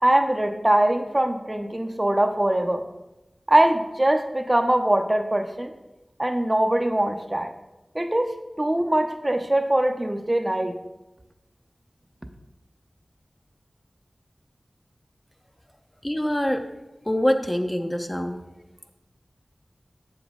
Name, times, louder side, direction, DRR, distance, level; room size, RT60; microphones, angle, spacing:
voice 1, 0.0-2.8 3.5-5.7 6.2-7.5 7.9-10.8, right 1 dB, 25° right, 6 dB, 0.6 m, -22 dB
voice 2, 16.0-16.6 17.1-18.4, equal, 20° left, 5 dB, 0.7 m, -24 dB
7.8 x 7.1 x 3.6 m, 1.0 s
wide cardioid pair, 60°, 0 cm